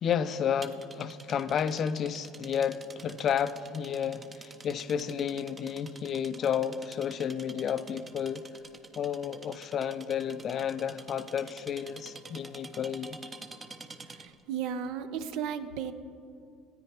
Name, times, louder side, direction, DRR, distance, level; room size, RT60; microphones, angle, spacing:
voice 1, 0.0-8.4 9.0-13.2, left 8 dB, 45° left, 0.4 m, -31 dB
sound 1, 0.6-14.4, right 3 dB, 25° right, 0.6 m, -48 dB
voice 2, 14.1-15.9, right 8 dB, 70° right, 0.5 m, -35 dB
13.0 x 9.4 x 2.9 m
supercardioid pair, 95°, 0 cm